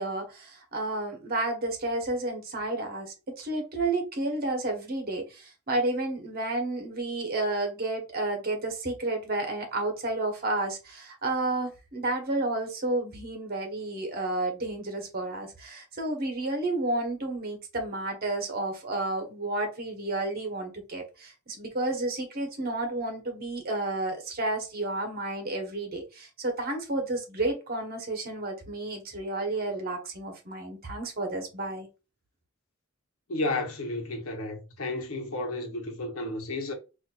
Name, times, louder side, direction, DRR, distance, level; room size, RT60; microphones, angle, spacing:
voice 1, 0.0-31.9, right 2 dB, 45° right, 1.1 m, -31 dB
voice 2, 33.3-36.7, left 2 dB, 75° left, 1.0 m, -32 dB
4.1 x 2.6 x 2.3 m
head